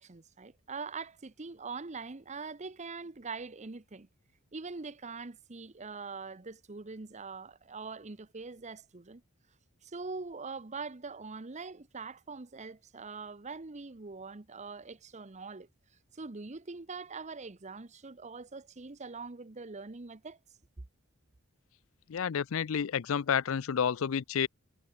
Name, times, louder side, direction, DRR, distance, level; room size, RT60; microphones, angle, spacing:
voice 1, 0.0-4.1 4.5-9.2 9.8-15.7 16.1-20.4, right 4 dB, 35° right, 0.9 m, -43 dB
voice 2, 22.1-24.5, left 7 dB, 65° left, 0.4 m, -30 dB
head